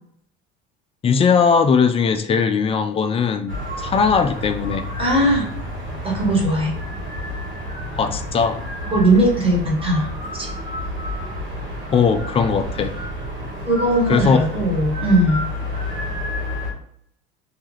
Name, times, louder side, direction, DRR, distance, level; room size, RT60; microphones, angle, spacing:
voice 1, 1.0-4.9 7.9-8.6 11.9-12.9 14.1-14.4, left 6 dB, 20° left, 8 dB, 0.3 m, -19 dB
sound 1, 3.5-16.7, left 1 dB, 65° right, 1.5 m, -30 dB
voice 2, 5.0-5.5 6.0-6.7 8.8-10.1 10.3-10.5 13.6-15.4, right 1 dB, 20° right, -2 dB, 1.2 m, -19 dB
2.7 x 2.3 x 3.1 m, 0.69 s
hypercardioid pair, 70°, 29 cm